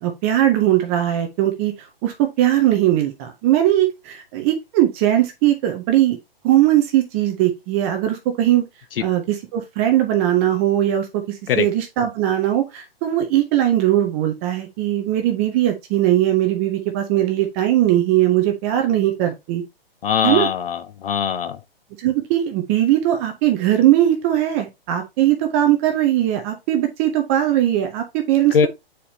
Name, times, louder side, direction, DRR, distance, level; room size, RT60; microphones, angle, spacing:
voice 1, 0.0-6.2 6.4-8.6 9.0-19.6 20.2-20.5 22.0-28.7, right 13 dB, 15° right, 0.4 m, -19 dB
voice 2, 20.0-21.6 28.5-28.7, left 7 dB, 65° left, 0.5 m, -21 dB
8.3 x 4.3 x 2.7 m
hypercardioid pair, 135°, 31 cm